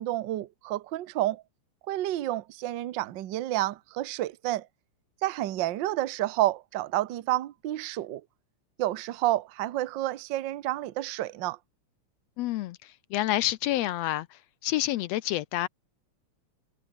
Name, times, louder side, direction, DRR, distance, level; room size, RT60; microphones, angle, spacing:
voice 1, 0.0-1.4 1.9-4.7 5.2-8.2 8.8-11.6, right 15 dB, 80° right, 1.0 m, -30 dB
voice 2, 12.4-15.7, left 15 dB, 80° left, 1.6 m, -29 dB
omnidirectional pair, 3.4 m